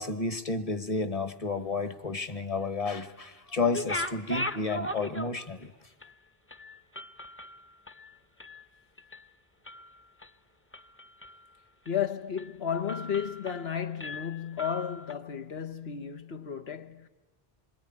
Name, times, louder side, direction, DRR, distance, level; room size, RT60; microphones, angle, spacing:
voice 1, 0.0-5.7, left 3 dB, 35° left, 1.3 m, -31 dB
sound 1, 3.6-5.6 6.0-6.1 6.5-8.6 9.0-9.3 9.6-10.3 10.7-11.5 11.9-12.0 12.4-12.5 12.9-13.7 14.0-15.1, left 1 dB, 15° left, 0.8 m, -38 dB
voice 2, 11.9-17.1, left 8 dB, 80° left, 1.4 m, -33 dB
27.0 x 21.5 x 9.9 m
omnidirectional pair, 1.0 m